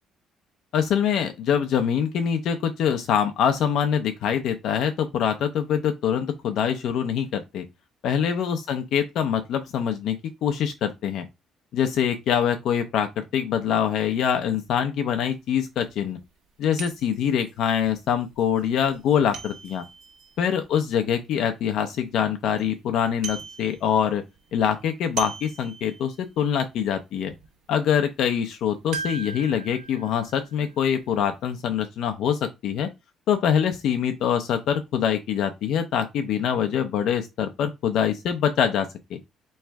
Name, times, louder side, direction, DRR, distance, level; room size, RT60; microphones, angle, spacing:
voice 1, 0.7-7.6 8.0-11.3 11.7-16.2 16.6-19.8 20.4-24.2 24.5-27.3 27.7-32.9 33.3-39.2, left 8 dB, 60° left, 0.6 m, -24 dB
sound 1, 15.9-16.0 16.8-21.5 21.9-22.0 22.3-22.7 23.0-24.1 24.3-26.3 26.7-26.8 27.3-27.5 28.9-31.3 31.6-31.7, right 5 dB, 70° right, 1.2 m, -39 dB
3.5 x 3.2 x 4.6 m
cardioid pair, 170°, 0 cm